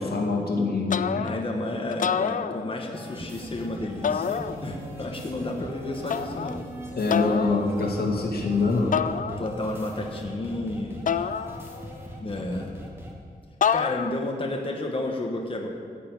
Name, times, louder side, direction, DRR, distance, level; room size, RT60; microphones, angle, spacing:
voice 1, 0.0-1.3 7.0-8.9, left 3 dB, 85° left, 0 dB, 2.2 m, -25 dB
sound 1, 0.9-1.5 1.9-3.0 4.0-4.9 6.1-6.6 7.1-7.6 8.9-9.8 11.1-12.0 13.6-14.4, left 7 dB, 55° left, 0.4 m, -28 dB
voice 2, 1.2-6.6 9.4-11.3 12.2-12.7 13.7-15.7, left 2 dB, 35° left, 1 dB, 1.2 m, -31 dB
sound 2, 2.9-13.1, right 1 dB, 15° right, 1.8 m, -41 dB
14.5 x 6.8 x 9.4 m, 2.2 s
wide cardioid pair, 180°, 16 cm